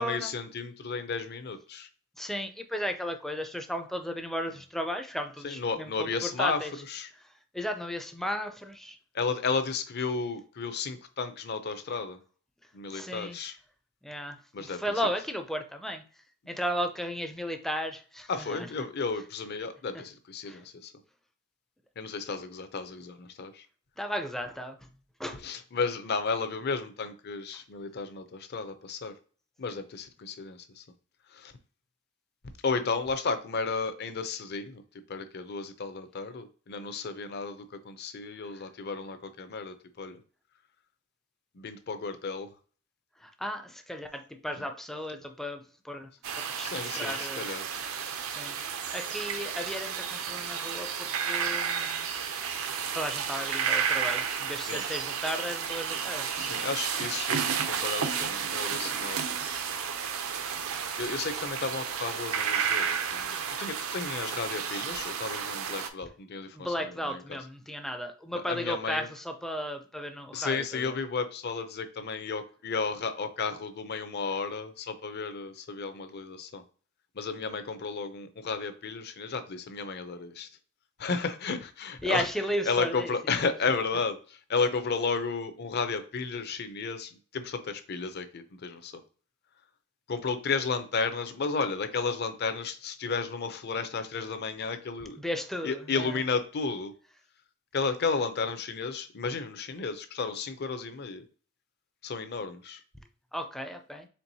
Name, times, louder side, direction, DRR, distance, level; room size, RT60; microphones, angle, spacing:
voice 1, 0.0-1.9 5.4-6.6 6.9-7.1 9.1-12.2 12.7-13.6 14.5-14.8 18.3-20.9 22.0-23.6 25.4-29.1 29.6-30.8 31.3-31.5 32.6-34.8 35.1-40.2 41.6-42.5 46.6-47.6 54.7-54.8 56.4-59.2 59.5-59.6 61.0-67.4 68.3-69.1 70.3-76.6 77.2-80.5 81.0-82.3 82.6-84.2 84.5-88.9 90.1-95.2 95.6-96.9 97.7-101.2 102.0-102.8, left 4 dB, 50° left, 9 dB, 0.6 m, -33 dB
voice 2, 2.2-6.7 7.5-9.0 12.9-13.4 14.0-16.0 16.5-18.7 20.5-20.6 24.0-24.8 25.2-25.4 43.2-46.1 46.6-47.4 48.3-48.6 48.9-52.1 52.3-52.5 52.9-56.6 66.5-70.9 82.0-83.4 95.2-96.2 103.3-104.1, equal, ahead, 6 dB, 0.4 m, -35 dB
sound 1, 46.2-65.9, right 7 dB, 80° right, 0.6 m, -32 dB
4.5 x 3.3 x 2.7 m, 0.40 s
head